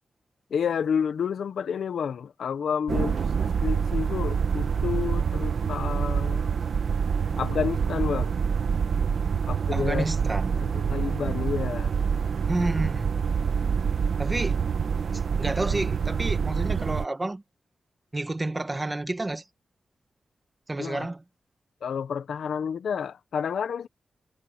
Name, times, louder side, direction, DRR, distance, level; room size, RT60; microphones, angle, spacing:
voice 1, 0.5-3.2 3.6-6.5 7.4-8.3 9.5-10.0 10.7-11.9 20.8-21.1 21.8-23.9, left 7 dB, 85° left, 1.1 m, -30 dB
sound 1, 2.9-17.1, right 6 dB, 65° right, 1.4 m, -26 dB
voice 2, 9.7-10.6 12.5-13.1 14.2-14.6 15.1-17.4 18.1-19.4 20.7-21.2, right 2 dB, 20° right, 1.6 m, -30 dB
wide cardioid pair, 125°, 0 cm